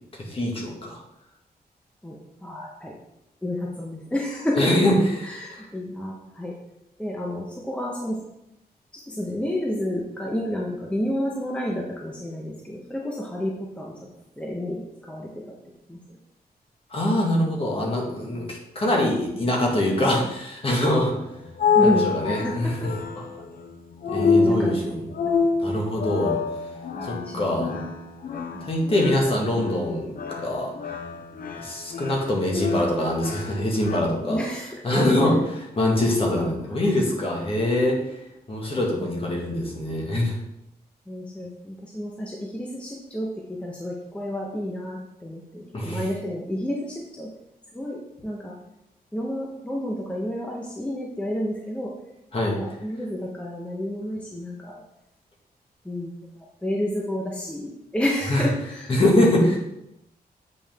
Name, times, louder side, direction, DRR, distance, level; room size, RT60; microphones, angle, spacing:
voice 1, 0.1-1.0 4.6-5.7 16.9-21.1 21.8-23.3 24.1-25.1 25.6-26.4 27.0-27.7 28.6-30.7 31.6-34.4 34.8-38.1 38.5-40.4 45.7-46.1 52.3-52.6 58.3-58.5 58.9-59.6, left 1 dB, 35° left, -1 dB, 1.8 m, -24 dB
voice 2, 2.0-2.9 3.4-4.7 5.2-6.5 7.0-8.2 8.9-13.9 14.4-15.5 15.9-16.0 21.7-22.9 24.2-24.8 25.2-25.3 26.9-27.9 28.5-28.7 34.2-34.7 36.3-36.7 39.0-39.4 41.1-47.3 47.7-48.5 49.1-51.9 52.6-54.8 55.8-56.3 56.6-59.0 59.5-59.6, equal, 5° left, -3 dB, 1.0 m, -30 dB
sound 1, 21.1-34.0, left 5 dB, 60° left, 0.7 m, -27 dB
8.3 x 5.6 x 3.6 m, 0.84 s
wide cardioid pair, 145°, 16 cm